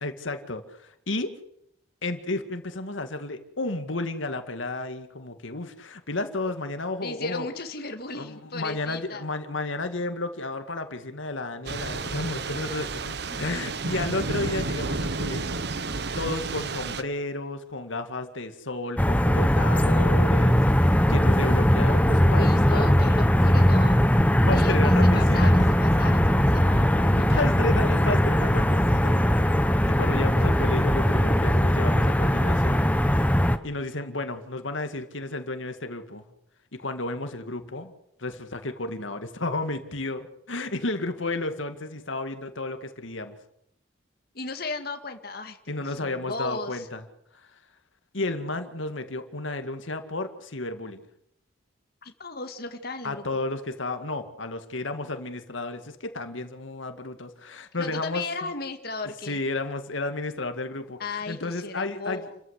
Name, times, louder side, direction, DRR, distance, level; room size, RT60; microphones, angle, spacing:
voice 1, 0.0-1.3 2.0-7.5 8.1-15.6 16.2-23.1 23.4-23.5 24.5-25.8 27.3-29.1 29.9-32.8 33.6-36.2 36.8-37.9 38.2-43.4 45.7-47.0 48.1-51.0 53.0-58.5 59.2-62.4, left 2 dB, 85° left, 7 dB, 2.1 m, -32 dB
voice 2, 7.0-9.2 13.3-13.5 22.2-24.0 24.5-27.4 44.3-46.9 52.0-53.2 57.8-59.4 61.0-62.4, left 3 dB, 55° left, 6 dB, 2.1 m, -36 dB
Thunder / Rain, 11.7-17.0, right 3 dB, 60° right, 1.1 m, -31 dB
sound 1, 19.0-33.6, equal, 10° left, 1.0 m, -20 dB
29.0 x 14.5 x 8.2 m, 0.78 s
head